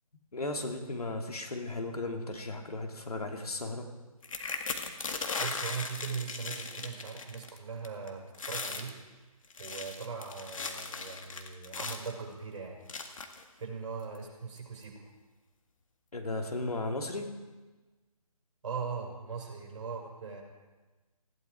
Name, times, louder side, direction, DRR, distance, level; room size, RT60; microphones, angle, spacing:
voice 1, 0.3-3.9 16.1-17.3, left 2 dB, 75° left, 3 dB, 2.8 m, -35 dB
sound 1, 4.2-7.6 7.8-8.1 8.3-8.9 9.4-12.1 12.9-13.4 14.1-14.2 14.6-14.8, left 4 dB, 60° left, 2.0 m, -38 dB
voice 2, 5.4-9.0 9.6-12.8 13.5-15.1 18.6-20.4, right 5 dB, 50° right, 0 dB, 5.3 m, -40 dB
19.5 x 15.5 x 4.6 m, 1.2 s
figure-of-eight pair, 155°, 19 cm